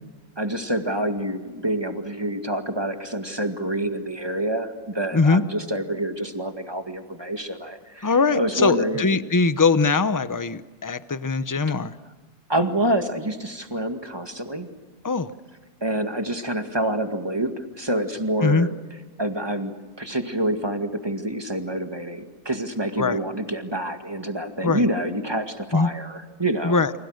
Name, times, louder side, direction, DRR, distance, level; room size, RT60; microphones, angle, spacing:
voice 1, 0.4-9.0 12.5-14.7 15.8-18.7 19.2-26.8, right 1 dB, 15° right, 5 dB, 2.0 m, -27 dB
voice 2, 8.0-11.9 15.0-15.3 18.4-18.7 23.0-23.2 24.6-24.8 25.7-25.9 26.6-26.9, left 4 dB, 25° left, 13 dB, 0.4 m, -21 dB
30.0 x 27.0 x 6.6 m, 1.3 s
omnidirectional pair, 1.7 m